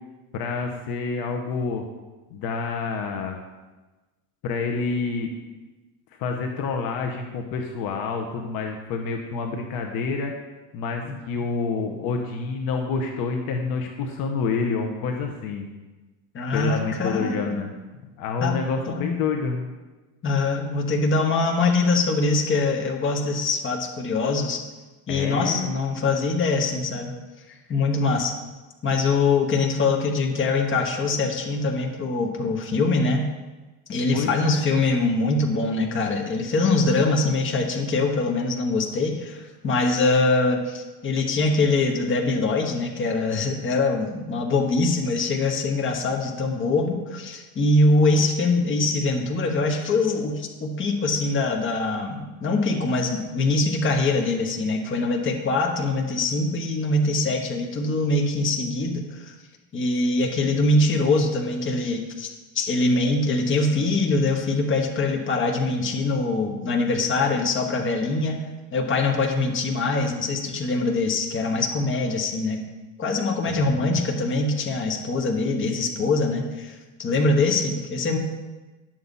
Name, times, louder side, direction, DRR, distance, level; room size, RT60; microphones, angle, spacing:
voice 1, 0.3-1.8 2.3-3.4 4.4-5.3 6.2-10.3 10.7-15.7 16.5-17.7 18.2-19.7 25.1-25.7 34.1-34.7 73.5-74.0, left 5 dB, 55° left, 3 dB, 1.2 m, -28 dB
voice 2, 16.3-17.6 18.4-18.6 18.9-19.2 20.2-24.6 25.1-27.1 27.7-28.3 28.8-33.2 33.9-59.3 59.7-62.3 62.5-68.4 68.7-72.6 73.0-78.2, left 3 dB, 25° left, 1 dB, 1.5 m, -23 dB
11.0 x 7.4 x 4.1 m, 1.2 s
supercardioid pair, 130°, 43 cm